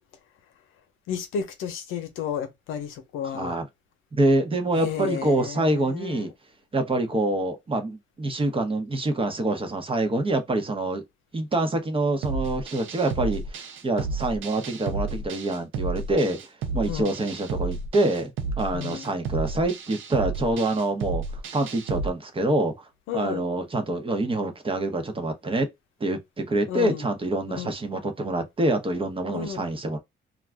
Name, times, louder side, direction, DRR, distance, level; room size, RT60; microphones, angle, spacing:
voice 1, 1.1-3.6 4.8-6.3 16.9-17.1 18.7-19.1 23.1-23.5 26.7-27.0 27.5-27.7 29.3-29.7, left 8 dB, 90° left, 0.7 m, -32 dB
voice 2, 3.3-3.7 4.1-6.3 6.7-11.0 11.3-16.4 16.7-18.3 18.6-22.8 23.1-25.7 26.0-30.0, right 2 dB, 25° right, 0.9 m, -26 dB
sound 1, 12.2-22.1, right 3 dB, 80° right, 0.6 m, -32 dB
2.5 x 2.2 x 3.3 m
cardioid pair, 90°, 20 cm